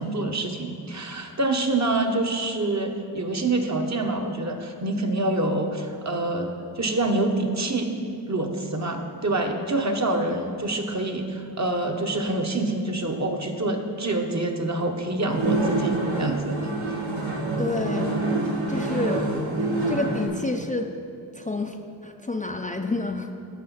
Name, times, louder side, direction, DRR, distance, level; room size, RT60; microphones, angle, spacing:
voice 1, 0.0-6.5 6.8-7.9 8.3-16.6, right 2 dB, 35° right, 3 dB, 1.1 m, -26 dB
sound 1, 15.3-20.3, right 2 dB, 75° right, 2.5 m, -26 dB
voice 2, 17.6-18.2 18.7-20.9 21.3-21.8 22.0-23.3, left 2 dB, 15° left, 2 dB, 0.6 m, -29 dB
13.0 x 5.0 x 5.8 m, 2.5 s
cardioid pair, 55°, 46 cm